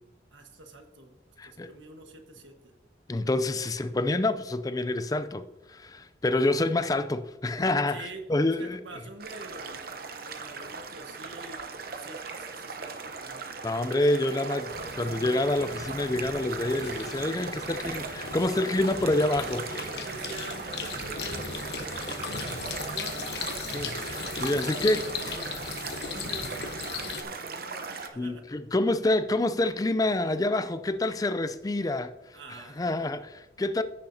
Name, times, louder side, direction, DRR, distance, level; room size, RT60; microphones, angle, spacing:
voice 1, 0.3-1.1 1.4-2.7 3.6-3.7 7.9-9.9 10.2-11.6 11.9-13.4 17.6-17.8 20.0-23.8 24.2-25.6 26.0-28.6 32.3-33.2, right 2 dB, 80° right, 1.4 m, -46 dB
voice 2, 1.4-1.7 3.1-8.8 13.6-14.7 15.0-19.9 23.7-23.9 24.4-25.0 28.2-32.1 32.8-33.8, left 2 dB, 20° left, 0.4 m, -27 dB
sound 1, 9.2-28.1, right 4 dB, 50° right, 0.8 m, -38 dB
sound 2, 14.7-27.2, left 5 dB, 60° left, 1.0 m, -38 dB
15.0 x 6.6 x 2.8 m
head